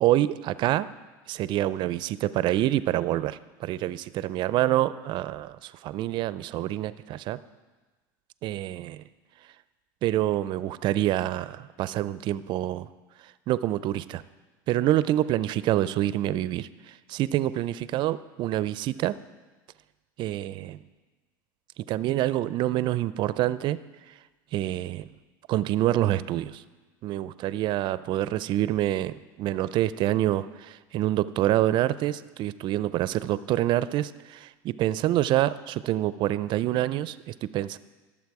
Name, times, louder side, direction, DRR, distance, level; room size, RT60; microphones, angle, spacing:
voice 1, 0.0-0.9 1.3-7.4 8.4-9.0 10.0-12.9 13.2-14.2 14.7-19.1 20.2-20.8 21.8-23.8 24.5-25.1 25.5-26.6 27.0-37.8, right 14 dB, 50° right, 16 dB, 0.4 m, -27 dB
13.0 x 7.1 x 4.8 m, 1.3 s
supercardioid pair, 110°, 10 cm